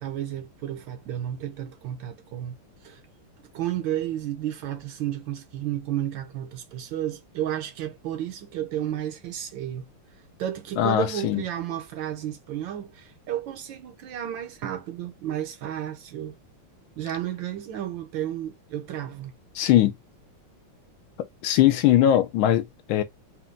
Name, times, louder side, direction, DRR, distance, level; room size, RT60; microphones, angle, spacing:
voice 1, 0.0-2.6 2.8-3.0 3.5-9.9 10.4-16.3 17.0-19.3, right 11 dB, 75° right, 1.3 m, -32 dB
voice 2, 10.8-11.4 19.5-19.9 21.4-23.0, left 12 dB, 75° left, 1.3 m, -20 dB
4.4 x 2.2 x 3.7 m
omnidirectional pair, 2.4 m